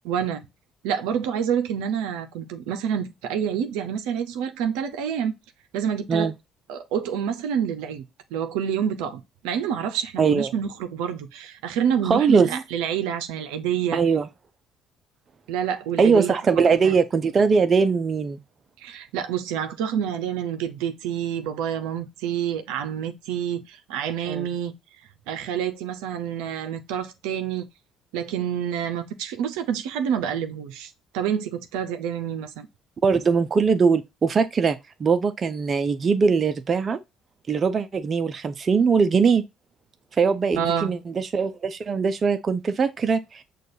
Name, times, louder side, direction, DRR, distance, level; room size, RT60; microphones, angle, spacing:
voice 1, 0.0-0.5 0.8-5.3 5.7-6.3 6.7-8.0 8.3-14.0 15.5-16.3 16.8-17.0 18.8-24.7 25.3-27.6 28.1-32.7 40.6-40.9, right 8 dB, 85° right, 0.6 m, -28 dB
voice 2, 10.2-10.5 12.0-12.6 13.9-14.3 16.0-18.4 24.3-24.5 33.0-37.0 37.5-39.4 40.2-43.4, right 5 dB, 40° right, 0.5 m, -21 dB
6.4 x 2.3 x 2.6 m
supercardioid pair, 75°, 0 cm